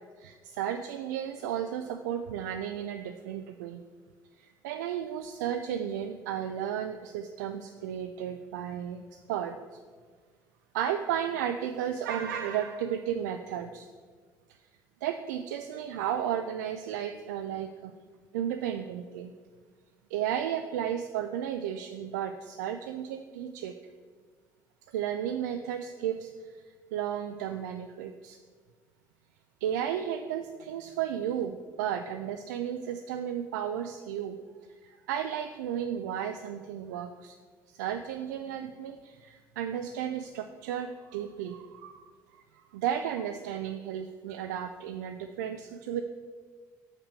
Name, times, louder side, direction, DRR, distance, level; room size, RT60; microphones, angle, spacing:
voice 1, 0.2-3.8 4.4-9.0 9.3-9.6 10.7-13.9 14.5-14.6 15.0-17.9 18.3-19.3 20.1-23.7 24.9-26.5 26.9-28.4 29.6-34.4 34.8-37.4 37.7-42.0 42.3-46.0, right 9 dB, 85° right, 8 dB, 0.4 m, -33 dB
6.7 x 5.9 x 6.7 m, 1.5 s
hypercardioid pair, 65°, 9 cm